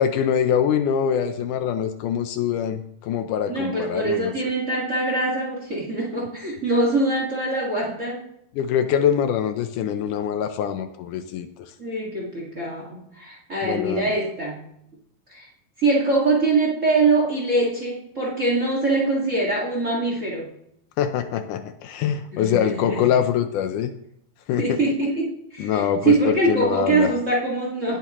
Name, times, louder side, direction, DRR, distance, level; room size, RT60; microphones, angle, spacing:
voice 1, 0.0-4.3 8.6-11.7 13.6-14.1 21.0-23.9 24.5-24.8 25.6-27.1, left 8 dB, 75° left, 8 dB, 2.1 m, -24 dB
voice 2, 3.5-8.3 11.8-14.6 15.3-15.5 15.8-20.5 22.3-23.1 24.6-28.0, right 2 dB, 25° right, -3 dB, 1.8 m, -23 dB
18.0 x 8.2 x 3.0 m, 0.75 s
omnidirectional pair, 3.9 m